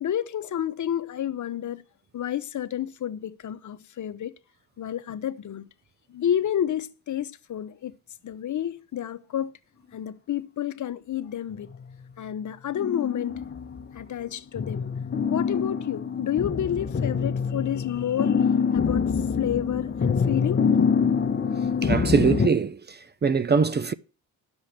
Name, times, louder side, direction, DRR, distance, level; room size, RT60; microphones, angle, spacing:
voice 1, 0.0-1.8 2.1-4.3 4.8-5.6 6.1-8.0 8.2-9.5 9.9-11.7 12.2-13.4 13.9-14.8 15.3-18.4 18.7-19.1 19.4-20.9, left 10 dB, 55° left, 1.0 m, -30 dB
sound 1, 11.5-12.1 12.7-14.2 14.6-22.5, left 6 dB, 30° left, 1.1 m, -25 dB
voice 2, 21.8-22.8 23.2-23.9, right 5 dB, 30° right, 0.6 m, -22 dB
10.0 x 7.2 x 6.4 m
cardioid pair, 80°, 36 cm